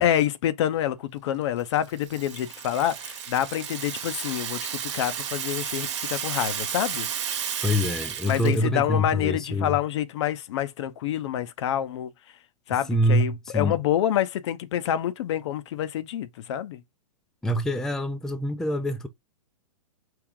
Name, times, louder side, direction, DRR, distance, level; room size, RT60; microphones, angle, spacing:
voice 1, 0.0-7.1 8.3-12.1 12.7-16.8, left 11 dB, 50° left, 0.6 m, -27 dB
Rattle (instrument), 1.7-8.6, right 8 dB, 50° right, 1.1 m, -33 dB
voice 2, 7.6-9.8 12.8-13.8 17.4-19.1, equal, 5° left, 0.4 m, -25 dB
4.7 x 2.8 x 3.6 m
figure-of-eight pair, 110°, 19 cm